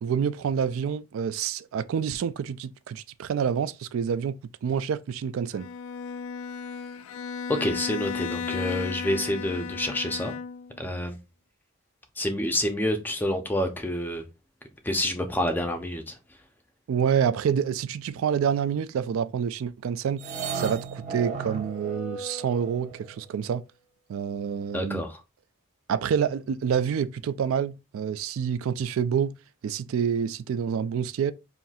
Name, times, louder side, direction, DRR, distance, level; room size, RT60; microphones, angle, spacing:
voice 1, 0.0-5.7 16.9-20.2 20.5-23.6 24.1-25.0 25.9-29.3 29.6-31.3, right 7 dB, 75° right, 0.3 m, -27 dB
Bowed string instrument, 5.5-10.8, left 5 dB, 75° left, 0.3 m, -34 dB
voice 2, 7.5-10.3 10.8-11.2 12.2-14.2 14.8-16.2 24.7-25.2, left 1 dB, 10° left, 0.5 m, -28 dB
sound 1, 20.2-23.3, right 5 dB, 35° right, 0.8 m, -35 dB
5.6 x 2.7 x 2.3 m
head